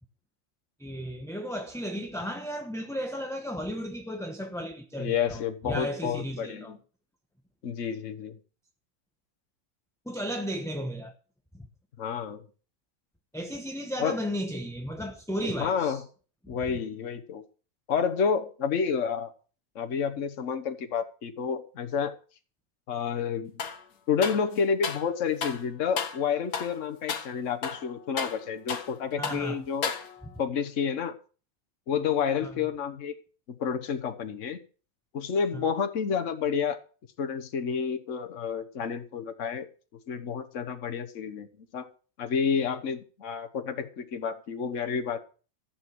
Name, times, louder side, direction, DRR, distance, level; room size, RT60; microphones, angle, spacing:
voice 1, 0.8-5.4 5.7-6.8 10.1-11.1 11.5-11.7 13.3-16.0 16.4-16.6 29.2-29.6 30.2-30.3 32.4-32.5 35.5-35.6, equal, ahead, 0.9 m, -34 dB
voice 2, 5.0-6.8 7.6-8.4 12.0-12.4 14.0-14.2 15.4-16.0 16.5-17.4 17.9-19.3 19.7-22.1 22.9-23.5 24.1-29.9 30.4-31.1 31.9-33.1 33.6-34.6 35.1-36.8 37.2-39.7 40.1-41.5 41.7-41.9 42.2-45.2, left 6 dB, 60° left, 1.5 m, -29 dB
sound 1, 23.6-23.8 24.2-25.1 25.4-25.6 26.0-26.2 26.5-26.8 27.1-27.3 27.6-29.0 29.2-29.5 29.8-30.4, left 6 dB, 90° left, 1.7 m, -33 dB
14.5 x 7.5 x 6.2 m
omnidirectional pair, 1.5 m